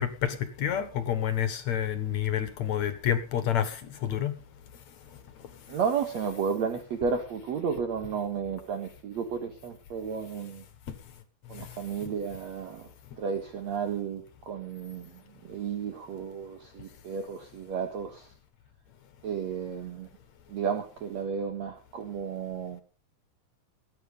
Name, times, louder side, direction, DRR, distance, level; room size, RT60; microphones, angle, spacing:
voice 1, 0.0-4.3, left 10 dB, 60° left, 11 dB, 2.4 m, -29 dB
voice 2, 5.7-10.6 11.5-12.9 13.2-18.3 19.2-20.1 20.5-22.8, right 6 dB, 55° right, 6 dB, 2.5 m, -33 dB
18.5 x 9.9 x 5.4 m, 0.34 s
omnidirectional pair, 4.1 m